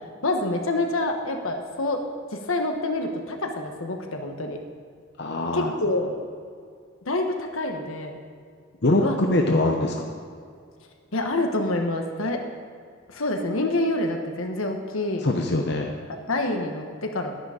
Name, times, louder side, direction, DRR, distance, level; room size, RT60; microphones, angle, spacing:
voice 1, 0.2-2.0 2.3-4.6 5.5-6.1 7.0-8.2 9.0-9.2 11.1-12.4 13.1-15.3 16.1-17.3, left 2 dB, 75° left, 4 dB, 1.4 m, -27 dB
voice 2, 5.2-5.7 8.8-10.2 15.2-15.9, left 2 dB, 50° left, 1 dB, 0.8 m, -23 dB
11.5 x 10.0 x 5.1 m, 2.2 s
head